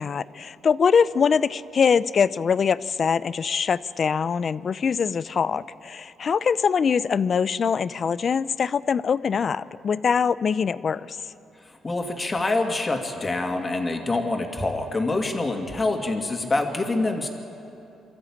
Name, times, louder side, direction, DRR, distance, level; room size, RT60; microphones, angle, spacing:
voice 1, 0.0-11.2, left 6 dB, 45° left, 17 dB, 0.5 m, -23 dB
voice 2, 11.8-17.3, left 2 dB, 25° left, 3 dB, 2.4 m, -26 dB
24.5 x 13.5 x 8.7 m, 2.7 s
cardioid pair, 90°, 0 cm